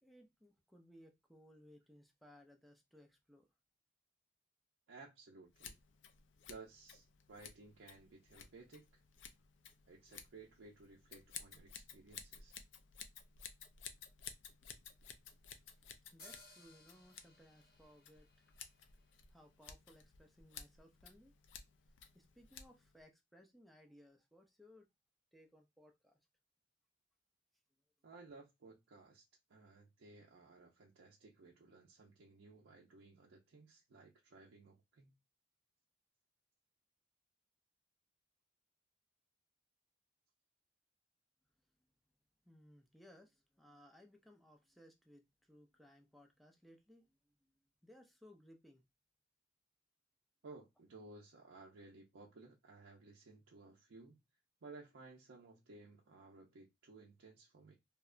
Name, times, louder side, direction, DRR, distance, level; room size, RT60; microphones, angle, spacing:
voice 1, 0.0-3.5 15.6-18.5 19.3-21.3 22.1-24.9 25.3-26.2 41.7-41.9 42.4-48.8, equal, ahead, 0.4 m, -63 dB
voice 2, 4.9-5.8 6.5-8.8 9.9-12.5 28.0-35.2 50.4-54.2 54.6-57.8, right 3 dB, 75° right, 0.5 m, -58 dB
Scissors, 5.5-23.0, left 7 dB, 70° left, 0.4 m, -55 dB
sound 1, 16.2-19.7, left 2 dB, 50° left, 0.9 m, -62 dB
2.8 x 2.1 x 2.4 m
head